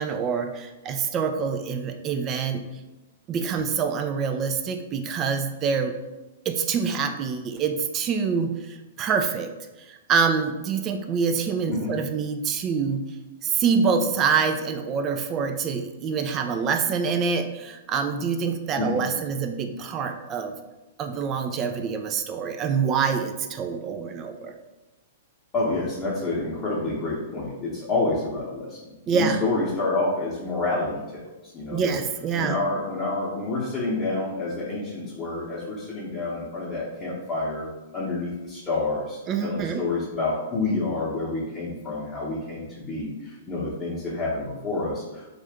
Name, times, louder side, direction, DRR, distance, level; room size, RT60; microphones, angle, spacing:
voice 1, 0.0-2.6 3.3-5.9 6.5-9.5 9.9-13.0 13.4-20.5 21.0-24.5 29.1-29.4 31.7-32.6 39.3-39.8, right 6 dB, 30° right, 6 dB, 0.3 m, -26 dB
voice 2, 25.5-32.0 32.3-45.3, left 2 dB, 25° left, -8 dB, 0.8 m, -28 dB
2.6 x 2.4 x 3.5 m, 1.1 s
figure-of-eight pair, 105°, 0 cm